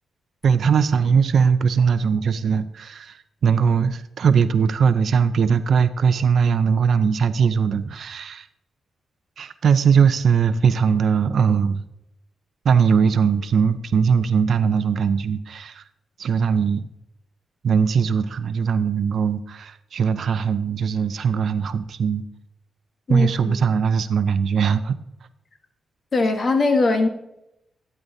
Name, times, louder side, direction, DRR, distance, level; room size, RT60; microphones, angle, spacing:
voice 1, 0.4-8.5 9.4-11.8 12.6-15.8 16.2-16.9 17.6-22.2 23.1-25.0, right 6 dB, 60° right, 13 dB, 0.5 m, -20 dB
voice 2, 23.1-23.5 26.1-27.1, left 3 dB, 40° left, 6 dB, 1.2 m, -20 dB
12.0 x 9.5 x 2.7 m, 0.84 s
wide cardioid pair, 130°, 0 cm